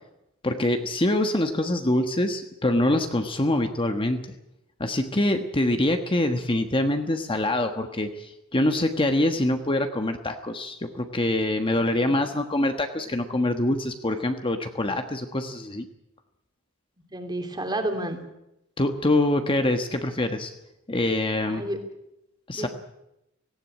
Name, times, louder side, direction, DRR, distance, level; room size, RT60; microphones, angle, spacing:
voice 1, 0.4-4.2 4.8-15.9 18.8-20.5 20.9-21.6 22.5-22.7, left 1 dB, 25° left, 6 dB, 1.3 m, -25 dB
voice 2, 11.8-12.3 17.1-18.2 21.4-21.8 22.5-22.7, right 1 dB, 20° right, 6 dB, 2.8 m, -31 dB
18.0 x 16.5 x 9.8 m, 0.87 s
head